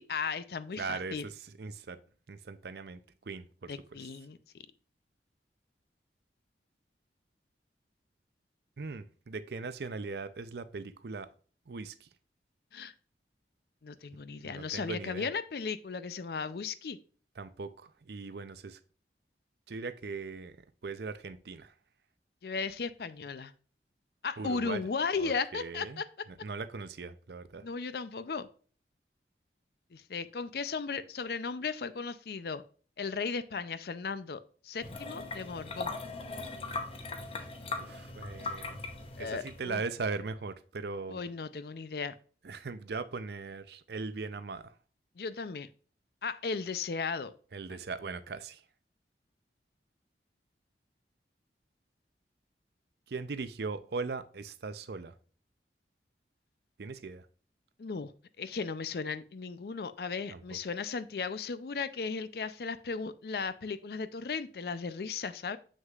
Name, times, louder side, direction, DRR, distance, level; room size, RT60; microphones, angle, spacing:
voice 1, 0.0-1.3 3.7-4.4 12.7-12.9 13.8-17.0 22.4-23.5 24.2-26.3 27.6-28.5 29.9-32.6 33.0-35.9 39.2-39.8 41.1-42.2 45.2-45.7 46.2-47.3 47.7-47.8 57.8-58.1 58.4-65.6, left 5 dB, 60° left, 14 dB, 0.5 m, -36 dB
voice 2, 0.8-1.3 1.6-2.0 2.3-3.0 3.3-3.7 8.8-11.3 11.7-11.9 14.4-15.3 17.4-18.8 19.7-20.6 20.8-21.7 24.4-24.8 25.2-26.0 26.4-27.6 37.8-38.8 39.2-41.2 42.4-44.7 47.5-48.6 53.1-55.1 56.8-57.2 60.3-60.4, right 4 dB, 65° right, 13 dB, 0.5 m, -39 dB
sound 1, 34.8-39.8, left 3 dB, 30° left, 0.8 m, -39 dB
7.4 x 6.4 x 2.4 m, 0.41 s
head